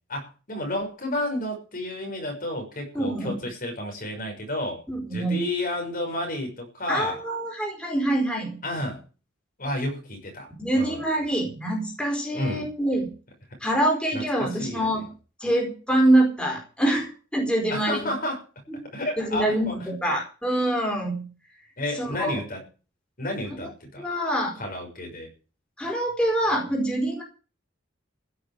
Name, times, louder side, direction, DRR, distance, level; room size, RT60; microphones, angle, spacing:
voice 1, 0.1-4.8 5.1-7.2 8.6-9.0 9.6-10.5 10.7-11.0 12.3-12.7 14.1-15.0 17.7-18.4 18.8-19.8 21.8-22.6 23.2-24.1 24.6-25.3, left 1 dB, 45° left, 3 dB, 6.2 m, -31 dB
voice 2, 2.9-3.3 4.9-5.4 6.9-8.6 10.6-13.1 13.6-15.1 15.4-18.1 18.7-18.8 19.2-21.3 21.9-22.4 24.0-24.6 25.8-27.2, right 1 dB, 5° left, 0 dB, 4.5 m, -25 dB
16.0 x 6.9 x 9.0 m, 0.36 s
head